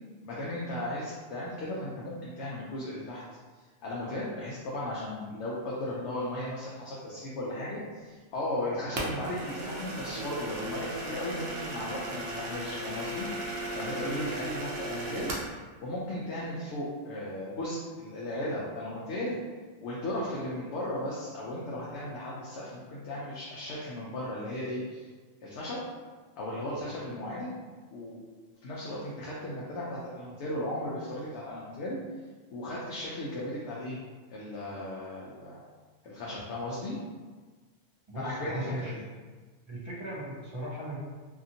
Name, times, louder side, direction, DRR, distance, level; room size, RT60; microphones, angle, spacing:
voice 1, 0.2-3.2 3.8-13.3 13.7-15.3 15.8-19.4 19.8-25.1 25.4-25.8 26.4-27.6 27.9-28.3 28.6-32.0 32.5-34.0 34.3-35.6 36.0-37.0 38.1-39.0, left 1 dB, 70° left, -6 dB, 0.8 m, -36 dB
sound 1, 9.0-15.6, right 1 dB, 75° right, 0.9 m, -36 dB
voice 2, 38.1-39.0 39.7-41.0, right 1 dB, 50° right, -7 dB, 0.3 m, -38 dB
2.8 x 2.5 x 2.6 m, 1.4 s
omnidirectional pair, 1.3 m